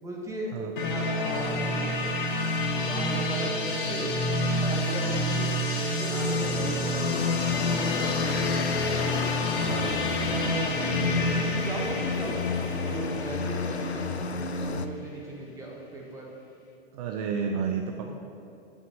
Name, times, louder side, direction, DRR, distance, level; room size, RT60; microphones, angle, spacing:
voice 1, 0.0-0.5 0.8-1.9 2.7-4.1 4.5-5.5 5.9-7.3 7.7-8.6 9.5-12.4 12.8-16.3 18.0-18.1, right 1 dB, 10° right, -2 dB, 1.7 m, -37 dB
sound 1, 0.8-14.5, left 1 dB, 50° left, 1.5 m, -29 dB
sound 2, 5.8-14.9, left 5 dB, 85° left, 0.6 m, -31 dB
voice 2, 9.6-9.9 16.9-18.1, right 6 dB, 40° right, 4 dB, 0.6 m, -31 dB
7.7 x 6.3 x 7.2 m, 2.8 s
figure-of-eight pair, 100°, 32 cm